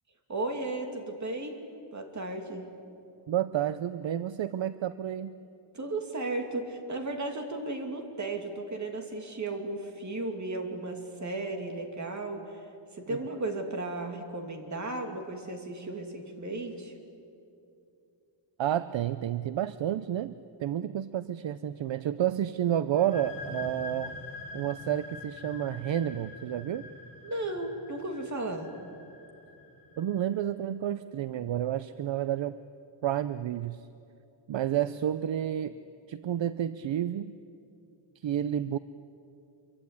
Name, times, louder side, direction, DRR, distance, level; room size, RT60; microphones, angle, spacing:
voice 1, 0.3-1.6 1.9-2.6 5.7-12.6 12.9-16.9 27.2-28.7, right 2 dB, 35° right, 4 dB, 2.7 m, -35 dB
voice 2, 3.3-5.3 18.6-20.3 20.6-24.2 24.5-26.9 30.0-32.6 33.0-33.8 34.5-35.8 36.1-37.3 38.2-38.8, right 11 dB, 65° right, 13 dB, 0.7 m, -30 dB
sound 1, 22.9-30.4, left 3 dB, 45° left, 6.6 m, -45 dB
25.5 x 24.0 x 9.7 m, 2.6 s
wide cardioid pair, 180°, 48 cm